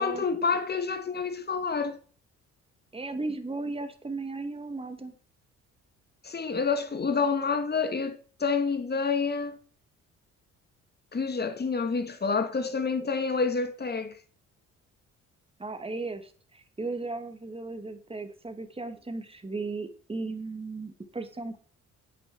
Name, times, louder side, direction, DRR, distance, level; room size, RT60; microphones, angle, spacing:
voice 1, 0.0-2.0 6.2-9.6 11.1-14.2, left 5 dB, 35° left, 2.5 m, -28 dB
voice 2, 2.9-5.2 15.6-21.6, right 3 dB, 20° right, 2.7 m, -36 dB
10.0 x 8.7 x 8.1 m
cardioid pair, 90°, 30 cm